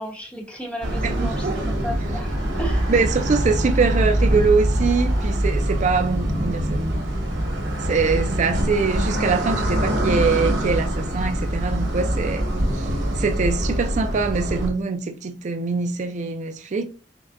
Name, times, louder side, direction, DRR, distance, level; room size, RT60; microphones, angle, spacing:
voice 1, 0.0-2.9, right 1 dB, 5° left, 1.0 m, -34 dB
sound 1, 0.8-14.7, right 1 dB, 90° right, 1.0 m, -24 dB
voice 2, 1.0-1.6 2.9-7.0 7.8-12.4 12.7-12.9 13.2-16.8, right 4 dB, 40° right, 0.4 m, -23 dB
5.9 x 2.2 x 2.5 m
head